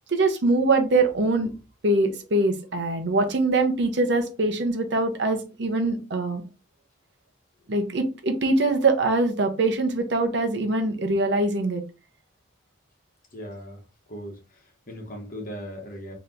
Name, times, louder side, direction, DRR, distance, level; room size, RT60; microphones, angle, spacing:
voice 1, 0.1-1.5 1.8-6.4 7.7-11.8, right 2 dB, 60° right, 0.7 m, -23 dB
voice 2, 13.3-13.8 14.1-16.1, equal, 40° left, 1.2 m, -38 dB
3.3 x 2.9 x 3.8 m
head